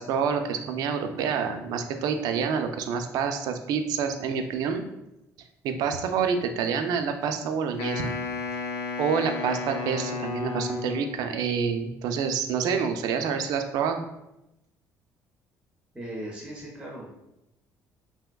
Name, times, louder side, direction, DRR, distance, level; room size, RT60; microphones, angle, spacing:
voice 1, 0.0-4.8 5.6-8.1 9.0-14.0, right 6 dB, 70° right, 7 dB, 0.3 m, -27 dB
Wind instrument woodwind instrument, 7.8-11.2, left 5 dB, 80° left, 0.5 m, -33 dB
voice 2, 15.9-17.1, right 1 dB, 10° right, -4 dB, 0.5 m, -38 dB
3.4 x 2.8 x 2.2 m, 0.89 s
cardioid pair, 170°, 7 cm